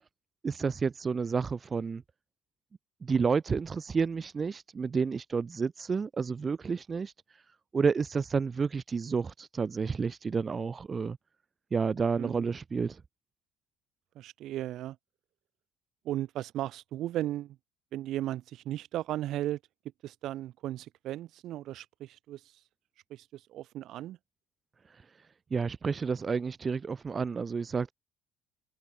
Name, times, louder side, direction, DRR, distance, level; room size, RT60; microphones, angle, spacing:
voice 1, 0.4-2.0 3.0-7.1 7.7-11.2 11.7-13.0 25.5-27.9, right 5 dB, 30° right, 2.3 m, -30 dB
voice 2, 14.2-15.0 16.0-17.6 17.9-19.6 20.0-22.6 23.1-24.2, right 13 dB, 55° right, 2.7 m, -36 dB
figure-of-eight pair, 55°, 0 cm